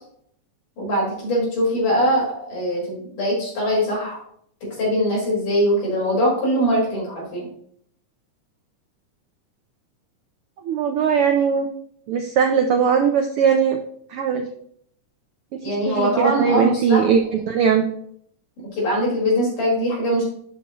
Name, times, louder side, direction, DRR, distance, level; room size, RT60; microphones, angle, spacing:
voice 1, 0.8-4.2 4.8-7.5 15.6-17.2 18.7-20.2, equal, 90° left, -4 dB, 6.4 m, -22 dB
voice 2, 10.6-11.7 12.1-13.8 14.1-14.5 15.5-17.9, right 7 dB, 80° right, 5 dB, 1.2 m, -20 dB
11.5 x 8.1 x 3.1 m, 0.65 s
omnidirectional pair, 3.5 m